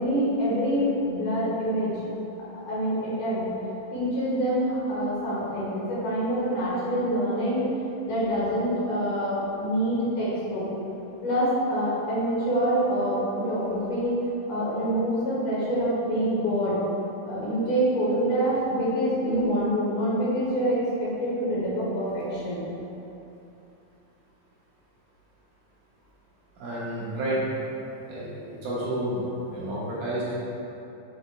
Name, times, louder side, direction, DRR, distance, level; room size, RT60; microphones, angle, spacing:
voice 1, 0.0-1.9 2.5-3.5 3.9-7.6 8.0-10.6 11.2-14.1 14.5-16.8 17.3-22.7, equal, 65° left, -8 dB, 2.8 m, -26 dB
voice 2, 26.6-27.4 28.1-28.3 28.6-29.2 29.5-30.5, right 1 dB, 65° right, -8 dB, 2.4 m, -30 dB
7.8 x 7.2 x 2.3 m, 2.9 s
omnidirectional pair, 4.1 m